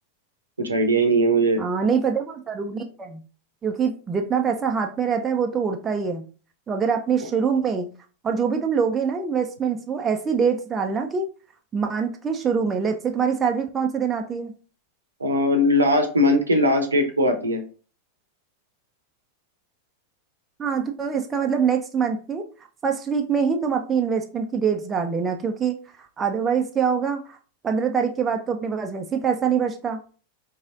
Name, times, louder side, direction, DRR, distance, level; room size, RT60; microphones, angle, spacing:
voice 1, 0.6-1.6 15.2-17.6, equal, 75° right, 6 dB, 0.7 m, -20 dB
voice 2, 1.6-3.2 3.6-6.2 6.7-7.9 8.2-11.3 11.7-14.5 20.6-22.4 22.8-25.8 26.2-27.4 27.6-30.0, right 6 dB, 20° right, 4 dB, 0.5 m, -24 dB
4.6 x 3.1 x 2.4 m, 0.38 s
figure-of-eight pair, 90°, 0 cm